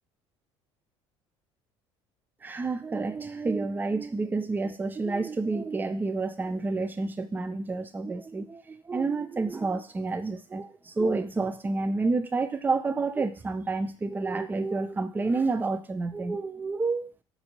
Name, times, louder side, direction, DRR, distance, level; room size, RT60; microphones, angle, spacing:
voice 1, 2.4-17.1, right 3 dB, 15° right, 10 dB, 0.3 m, -29 dB
4.1 x 2.2 x 2.7 m, 0.41 s
hypercardioid pair, 65°, 15 cm